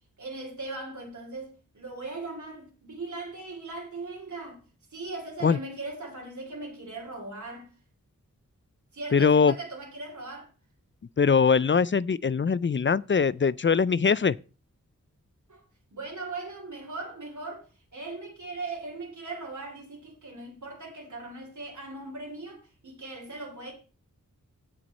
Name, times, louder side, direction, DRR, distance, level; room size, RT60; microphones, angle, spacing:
voice 1, 0.2-4.6 4.9-7.7 8.9-10.5 15.5-15.6 15.9-17.7 17.9-23.7, right 3 dB, 65° right, 3.0 m, -39 dB
voice 2, 9.1-9.5 11.2-14.4, left 5 dB, 35° left, 0.4 m, -22 dB
16.0 x 6.2 x 4.1 m
wide cardioid pair, 95°, 32 cm